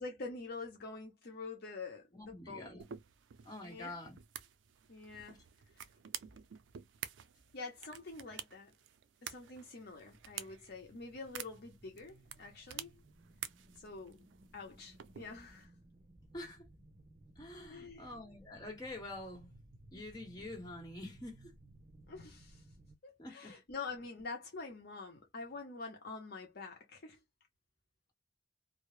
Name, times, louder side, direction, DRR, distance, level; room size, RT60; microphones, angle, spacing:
voice 1, 0.0-2.9 3.6-4.0 4.9-5.4 7.5-8.7 9.2-13.0 13.8-14.2 14.5-15.7 17.7-18.1 19.9-20.0 22.1-22.6 23.0-27.2, left 4 dB, 60° left, 0.8 m, -46 dB
voice 2, 2.1-2.8 3.4-4.2 16.3-16.7 17.4-19.5 19.9-21.5 23.2-23.5, left 2 dB, 20° left, 1.2 m, -46 dB
sound 1, 2.8-15.6, right 9 dB, 90° right, 0.4 m, -50 dB
sound 2, 9.7-23.0, right 1 dB, 35° right, 0.6 m, -61 dB
2.3 x 2.0 x 3.1 m
head